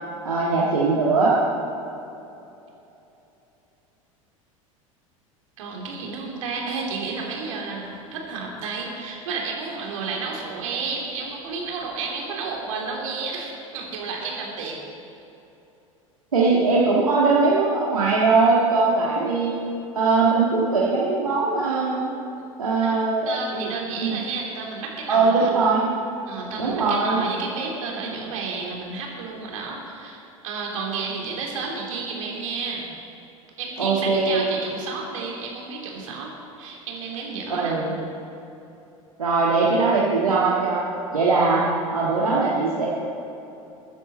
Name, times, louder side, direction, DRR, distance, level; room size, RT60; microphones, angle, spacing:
voice 1, 0.2-1.4 16.3-19.5 19.9-22.1 22.6-23.7 24.0-24.2 25.1-25.9 26.6-27.2 33.8-34.5 37.5-38.0 39.2-40.8 41.1-41.7 41.9-42.9, right 3 dB, 85° right, -6 dB, 1.8 m, -20 dB
voice 2, 5.6-14.8 22.8-22.9 23.2-25.6 26.3-30.2 30.4-32.9 33.6-37.8, right 4 dB, 65° right, -1 dB, 3.2 m, -31 dB
22.0 x 9.8 x 4.3 m, 2.9 s
figure-of-eight pair, 80°, 18 cm